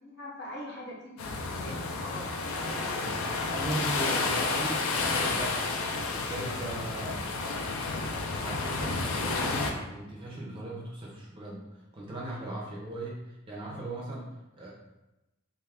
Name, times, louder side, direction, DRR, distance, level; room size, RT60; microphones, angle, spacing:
voice 1, 0.0-2.5, left 1 dB, 50° left, -4 dB, 0.8 m, -43 dB
sound 1, 1.2-9.7, left 3 dB, 75° left, 0.4 m, -31 dB
voice 2, 2.7-7.2 8.2-14.7, right 1 dB, 25° right, -4 dB, 0.5 m, -38 dB
2.5 x 2.4 x 3.4 m, 0.99 s
head